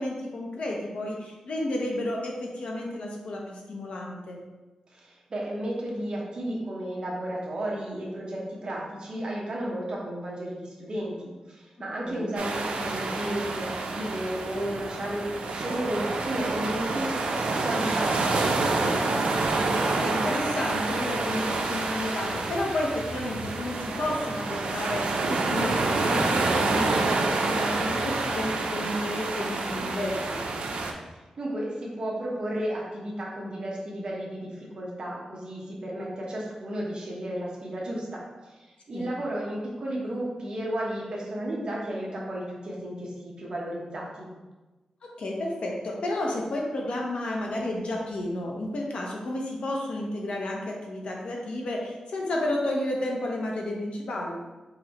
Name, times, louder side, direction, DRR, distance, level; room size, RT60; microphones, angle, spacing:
voice 1, 0.0-4.4 12.0-12.3 19.8-30.4 38.9-39.1 45.2-54.4, left 1 dB, 65° left, -1 dB, 0.8 m, -31 dB
voice 2, 4.9-19.0 31.0-44.3, right 1 dB, 45° right, -3 dB, 1.0 m, -33 dB
sound 1, 12.4-30.9, right 3 dB, 85° right, 0.5 m, -28 dB
5.1 x 3.1 x 3.0 m, 1.2 s
wide cardioid pair, 150°, 2 cm